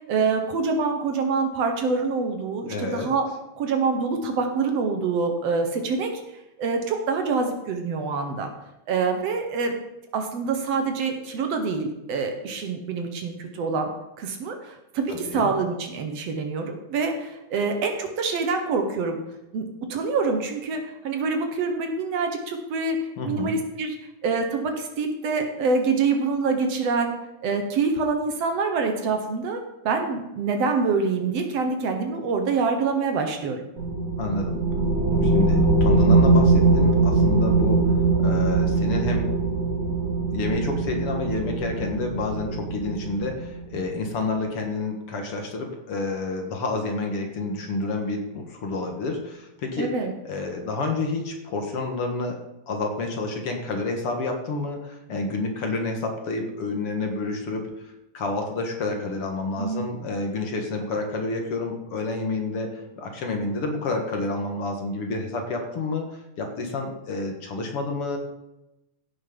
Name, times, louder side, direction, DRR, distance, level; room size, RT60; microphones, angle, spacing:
voice 1, 0.1-3.3 3.6-6.1 6.6-8.5 8.9-9.8 10.1-13.9 14.2-19.2 19.5-23.0 23.2-23.9 24.2-27.1 27.4-33.6 49.8-50.1 59.6-59.9, right 4 dB, 65° right, 5 dB, 2.2 m, -26 dB
voice 2, 2.7-3.1 15.1-15.5 23.2-23.6 34.2-34.6 35.2-39.3 40.3-49.9 50.2-52.4 52.7-68.2, left 3 dB, 55° left, 3 dB, 2.2 m, -29 dB
sound 1, 33.8-43.8, right 3 dB, 80° right, 3.8 m, -21 dB
16.0 x 6.5 x 5.3 m, 0.91 s
omnidirectional pair, 3.3 m